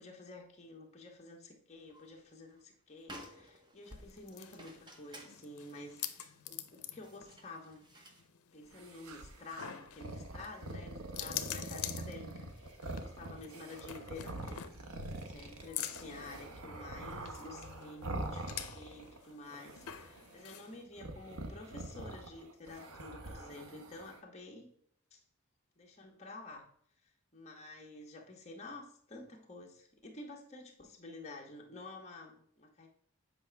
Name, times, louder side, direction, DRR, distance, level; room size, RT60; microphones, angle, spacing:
voice 1, 0.0-6.1 6.5-7.9 8.5-14.7 15.1-24.7 25.1-25.2 25.8-26.7 27.0-32.9, left 2 dB, 30° left, 1 dB, 1.2 m, -50 dB
sound 1, 1.7-2.2 2.5-2.6 3.0-8.3, equal, 20° right, 0.8 m, -54 dB
sound 2, 3.8-20.8, left 11 dB, 80° left, 0.6 m, -47 dB
sound 3, 8.7-19.2 19.4-20.4 21.0-24.2, right 2 dB, 75° right, 0.8 m, -45 dB
7.9 x 4.9 x 3.4 m, 0.64 s
head